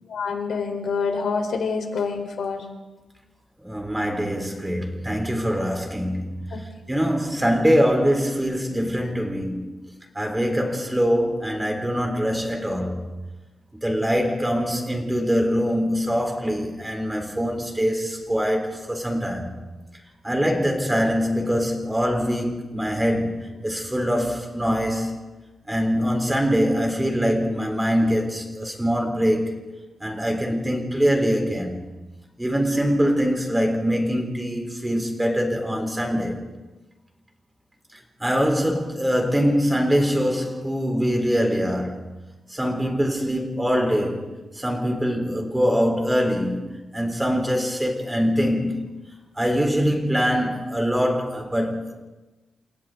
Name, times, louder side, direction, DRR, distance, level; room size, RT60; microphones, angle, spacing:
voice 1, 0.1-2.6, left 5 dB, 75° left, 4.3 m, -26 dB
voice 2, 3.6-6.6 6.9-9.7 10.1-13.0 13.8-19.6 20.2-25.2 25.7-29.5 30.0-31.8 32.4-36.4 38.2-42.0 42.5-44.3 44.6-46.6 46.9-48.8 49.4-52.0, equal, 10° right, 4.1 m, -23 dB
30.0 x 27.5 x 4.0 m
wide cardioid pair, 160°, 0 cm